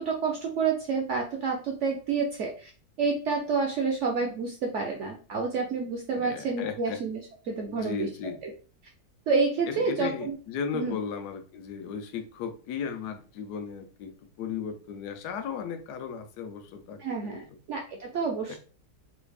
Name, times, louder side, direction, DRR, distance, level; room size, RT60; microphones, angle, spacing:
voice 1, 0.0-2.7 3.0-7.2 7.4-8.5 9.3-10.4 10.7-10.9 17.0-18.6, right 4 dB, 70° right, 1 dB, 0.7 m, -29 dB
voice 2, 6.1-7.0 7.7-8.4 9.7-17.6 18.5-18.6, left 6 dB, 85° left, 7 dB, 1.2 m, -36 dB
3.3 x 2.3 x 3.2 m, 0.38 s
omnidirectional pair, 1.7 m